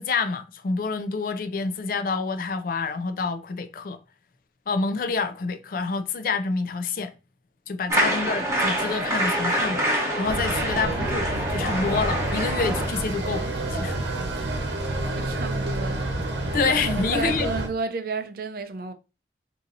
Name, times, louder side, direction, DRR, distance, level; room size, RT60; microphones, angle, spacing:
voice 1, 0.0-4.0 4.7-7.1 7.7-14.0 16.5-17.5, left 4 dB, 50° left, 0.4 m, -27 dB
sound 1, 7.9-12.9, right 1 dB, 15° right, 1.0 m, -26 dB
voice 2, 7.9-8.3 15.2-16.2 16.5-16.6 17.1-18.9, right 3 dB, 55° right, 0.4 m, -32 dB
sound 2, 10.2-17.7, right 1 dB, 85° right, 0.9 m, -29 dB
4.0 x 2.7 x 2.5 m
head